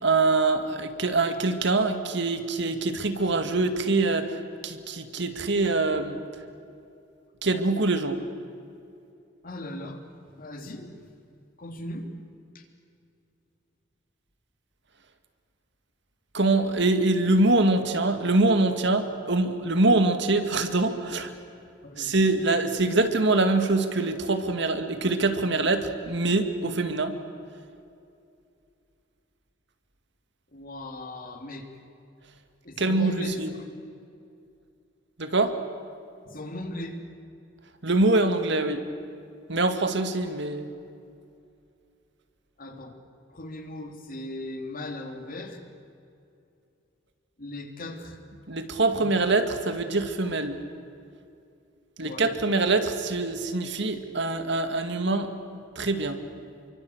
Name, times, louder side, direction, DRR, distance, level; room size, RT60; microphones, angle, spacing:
voice 1, 0.0-4.4 4.6-6.2 7.4-8.2 16.3-21.3 22.0-27.2 32.8-33.5 35.2-35.6 37.8-38.8 39.5-40.7 48.5-50.6 52.0-55.3 55.8-56.2, right 2 dB, 65° right, 7 dB, 2.2 m, -24 dB
voice 2, 9.4-10.0 10.4-10.9 11.6-12.1 21.8-22.1 30.5-31.7 32.6-33.4 36.2-37.0 42.6-42.9 43.3-45.6 47.4-48.2 52.0-52.4, left 1 dB, 50° left, 4 dB, 3.2 m, -37 dB
29.0 x 24.5 x 8.1 m, 2.6 s
head